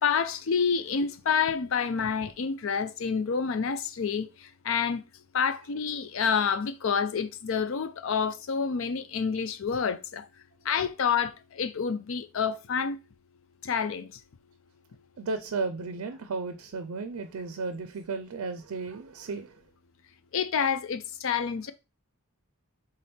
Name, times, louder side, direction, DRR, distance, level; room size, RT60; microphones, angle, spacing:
voice 1, 0.0-5.0 5.3-10.3 10.6-13.0 13.6-14.1 20.3-21.7, left 6 dB, 60° left, 0.4 m, -28 dB
voice 2, 15.2-19.6, right 4 dB, 85° right, 0.5 m, -34 dB
4.2 x 3.7 x 3.4 m
head